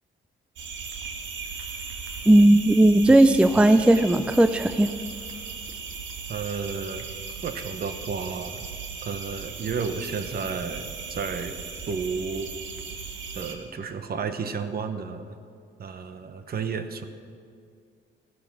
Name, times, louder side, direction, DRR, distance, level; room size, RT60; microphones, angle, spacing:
sound 1, 0.6-13.5, right 5 dB, 70° right, 1.8 m, -37 dB
voice 1, 2.3-4.9, right 1 dB, 5° right, 11 dB, 0.5 m, -17 dB
voice 2, 6.3-8.6 9.0-11.6 11.9-12.5 13.3-15.4 15.8-17.0, right 5 dB, 50° right, 9 dB, 1.1 m, -32 dB
15.5 x 11.5 x 6.1 m, 2.3 s
cardioid pair, 90°, 20 cm